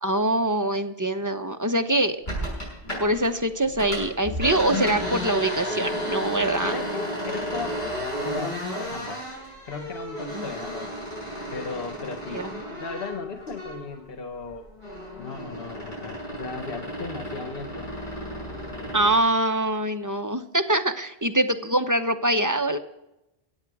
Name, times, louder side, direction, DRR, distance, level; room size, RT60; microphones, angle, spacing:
voice 1, 0.0-2.2 3.0-6.8 10.3-10.5 12.3-12.4 18.9-22.8, right 1 dB, 20° right, 6 dB, 0.8 m, -24 dB
sound 1, 2.3-3.3 3.6-14.0 14.3-19.2, equal, 50° left, 6.5 m, -33 dB
voice 2, 6.6-7.8 8.2-8.6 8.9-9.3 9.6-10.9 11.5-14.7 15.2-17.9, left 4 dB, 65° left, 5 dB, 1.2 m, -36 dB
22.5 x 8.2 x 4.8 m, 0.91 s
omnidirectional pair, 1.0 m